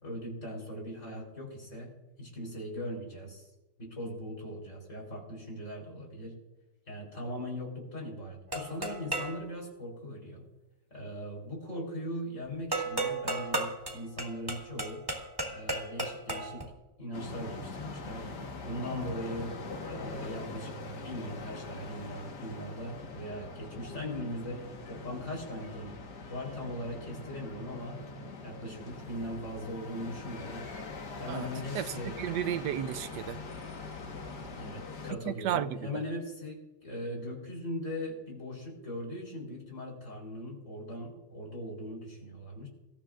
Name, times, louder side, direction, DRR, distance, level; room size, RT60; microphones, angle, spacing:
voice 1, 0.0-3.5 3.8-6.4 6.9-10.5 10.9-15.0 15.5-16.7 17.0-18.3 18.6-19.6 19.8-26.0 26.3-28.0 28.4-30.7 31.2-32.2 34.5-42.7, equal, 45° left, 4.6 m, -40 dB
sound 1, 8.5-9.4 12.7-16.6, right 2 dB, 15° right, 2.1 m, -34 dB
sound 2, 17.1-35.1, left 3 dB, 75° left, 2.1 m, -43 dB
voice 2, 31.7-33.4 35.3-36.0, right 11 dB, 85° right, 1.2 m, -33 dB
25.5 x 13.5 x 2.5 m
omnidirectional pair, 1.8 m